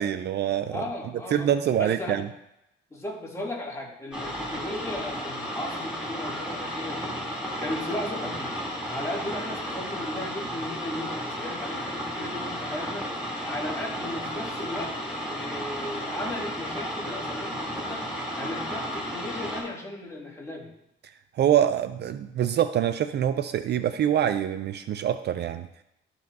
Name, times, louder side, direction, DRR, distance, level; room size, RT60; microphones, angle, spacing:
voice 1, 0.0-0.8 1.3-2.3 21.4-25.7, right 10 dB, 60° right, 11 dB, 0.4 m, -25 dB
voice 2, 0.7-1.5 1.8-2.2 2.9-7.2 7.6-8.5 8.9-20.7, left 1 dB, 15° left, -4 dB, 2.7 m, -36 dB
sound 1, 4.1-19.6, equal, 5° right, 3.2 m, -33 dB
13.0 x 5.4 x 2.7 m, 0.84 s
cardioid pair, 90°, 20 cm